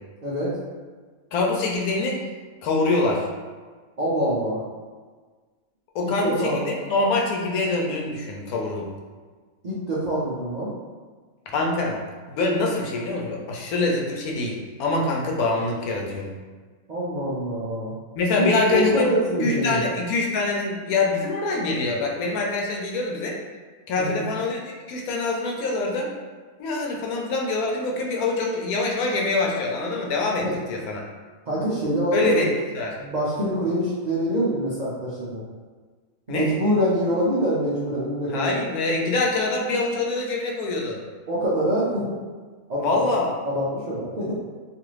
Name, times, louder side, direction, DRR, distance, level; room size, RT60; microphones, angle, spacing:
voice 1, 0.2-0.6 4.0-4.6 6.0-6.6 9.6-10.7 16.9-17.9 18.4-19.8 24.0-24.3 30.4-30.5 31.5-32.5 33.0-35.4 36.3-38.6 39.0-39.1 41.3-42.2 42.7-43.1 43.4-44.3, equal, 75° right, -9 dB, 0.4 m, -25 dB
voice 2, 1.3-2.2 2.6-3.3 5.9-8.9 11.5-12.0 12.3-16.3 18.2-19.1 19.4-23.4 23.9-26.1 26.6-31.0 32.1-32.5 32.8-32.9 36.3-36.5 38.3-41.0 42.8-43.3, left 3 dB, 80° left, -1 dB, 1.1 m, -25 dB
2.6 x 2.5 x 3.0 m, 1.5 s
omnidirectional pair, 1.6 m